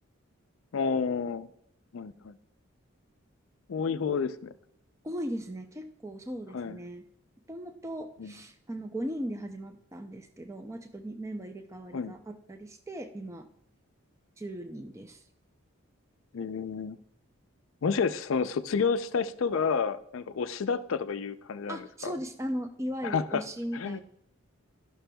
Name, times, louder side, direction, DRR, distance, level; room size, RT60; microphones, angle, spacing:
voice 1, 0.7-1.5 1.9-2.4 3.7-4.5 6.5-6.8 8.2-8.3 11.9-12.1 16.3-17.0 17.8-22.1 23.0-23.4 23.7-24.0, left 5 dB, 70° left, 12 dB, 0.4 m, -30 dB
voice 2, 5.0-7.0 7.5-13.5 14.4-15.2 21.7-24.0, equal, 15° right, 6 dB, 0.5 m, -38 dB
13.0 x 6.0 x 2.2 m, 0.72 s
head